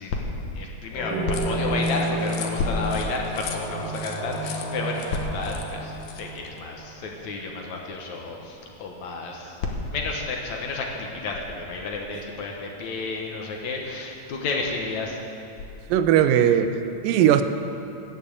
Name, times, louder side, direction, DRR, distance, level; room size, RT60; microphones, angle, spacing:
voice 1, 0.0-9.6 9.9-15.2, left 3 dB, 65° left, 0 dB, 2.2 m, -31 dB
sound 1, 0.9-7.1, right 1 dB, 30° left, 3.0 m, -31 dB
sound 2, 1.3-6.6, left 9 dB, 85° left, 2.6 m, -41 dB
voice 2, 15.9-16.8 17.0-17.4, right 10 dB, 85° right, 10 dB, 2.4 m, -19 dB
13.5 x 7.0 x 8.5 m, 2.8 s
omnidirectional pair, 3.9 m